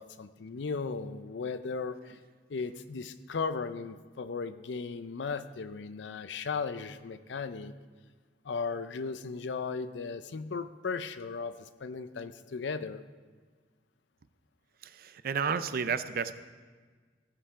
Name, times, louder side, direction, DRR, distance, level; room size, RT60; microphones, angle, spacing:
voice 1, 0.0-2.2 2.5-7.7 8.4-13.0, left 4 dB, 75° left, 12 dB, 0.5 m, -36 dB
voice 2, 14.8-16.4, right 6 dB, 55° right, 12 dB, 0.5 m, -32 dB
15.5 x 5.7 x 4.8 m, 1.5 s
head